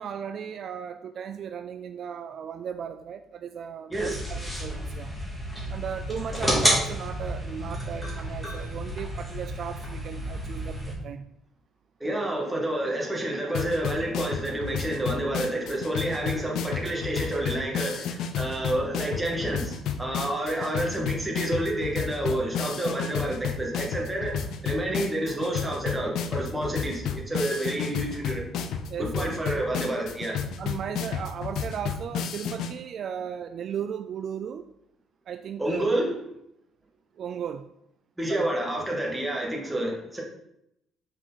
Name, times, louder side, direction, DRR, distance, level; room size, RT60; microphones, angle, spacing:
voice 1, 0.0-5.1 5.7-11.3 28.9-29.3 30.6-34.6 35.3-35.9 37.2-37.7 38.3-38.5, right 8 dB, 50° right, 9 dB, 0.3 m, -36 dB
sound 1, 3.9-10.9, equal, 10° left, 2.0 m, -30 dB
voice 2, 12.0-28.4 29.0-30.4 35.6-36.1 38.2-40.2, right 1 dB, 10° right, -2 dB, 1.6 m, -29 dB
sound 2, 13.5-32.7, left 7 dB, 75° left, 0.5 m, -32 dB
5.9 x 4.8 x 4.0 m, 0.80 s
cardioid pair, 125°, 0 cm